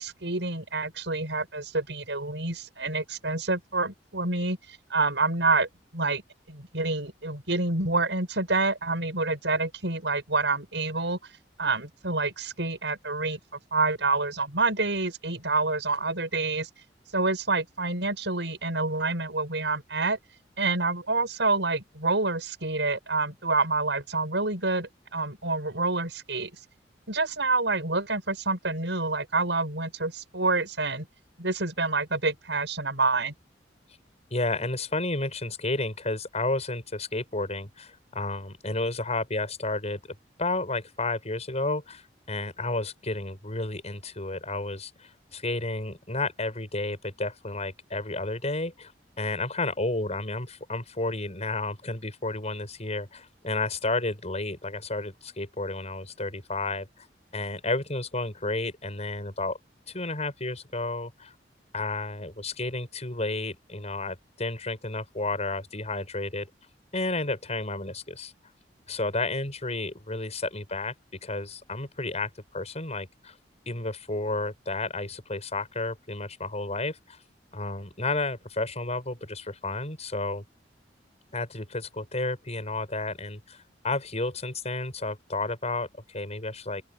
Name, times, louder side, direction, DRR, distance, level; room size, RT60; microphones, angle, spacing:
voice 1, 0.0-6.2 6.5-11.2 11.6-13.4 13.7-16.7 17.1-20.2 20.6-26.5 27.1-31.1 31.4-33.3, right 3 dB, 85° right, 6.1 m, -27 dB
voice 2, 34.3-48.9 49.2-57.1 57.3-59.6 59.9-61.3 61.7-66.5 66.9-68.3 68.9-73.4 73.7-77.2 77.5-80.4 81.3-86.8, left 2 dB, 40° left, 7.3 m, -31 dB
open air
head